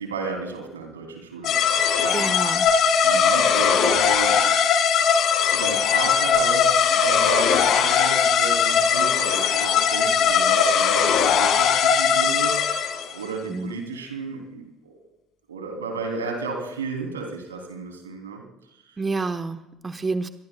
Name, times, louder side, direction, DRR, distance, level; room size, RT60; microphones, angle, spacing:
voice 1, 0.0-2.4 2.7-4.8 5.4-12.6 13.1-15.0 15.5-18.4, right 4 dB, 85° right, 2 dB, 3.1 m, -33 dB
sound 1, 1.4-13.1, left 7 dB, 55° left, 2.0 m, -20 dB
voice 2, 2.1-2.7 13.5-13.7 19.0-20.3, right 3 dB, 25° right, 8 dB, 1.0 m, -28 dB
24.0 x 22.5 x 2.3 m, 0.94 s
hypercardioid pair, 60°, 0 cm